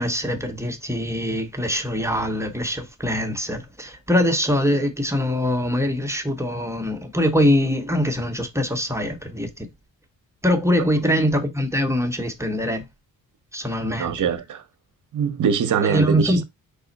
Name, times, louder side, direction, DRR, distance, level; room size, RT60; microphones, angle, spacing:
voice 1, 0.0-9.7 10.4-12.8 13.5-14.1 15.8-16.4, equal, 5° right, 0.7 m, -23 dB
voice 2, 14.0-14.6 15.1-16.4, right 7 dB, 55° right, 0.7 m, -23 dB
5.0 x 2.0 x 3.9 m
cardioid pair, 85°, 37 cm